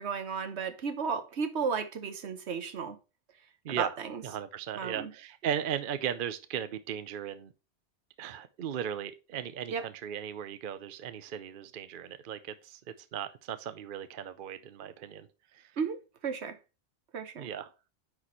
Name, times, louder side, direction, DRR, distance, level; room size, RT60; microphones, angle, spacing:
voice 1, 0.0-3.0 3.7-4.2 4.8-5.1 9.7-9.8 15.8-16.6 17.1-17.5, right 6 dB, 75° right, 1.2 m, -34 dB
voice 2, 4.2-7.5 8.2-12.8 13.1-15.7 17.4-17.7, right 9 dB, 55° right, 0.7 m, -37 dB
9.6 x 4.2 x 4.2 m
omnidirectional pair, 1.2 m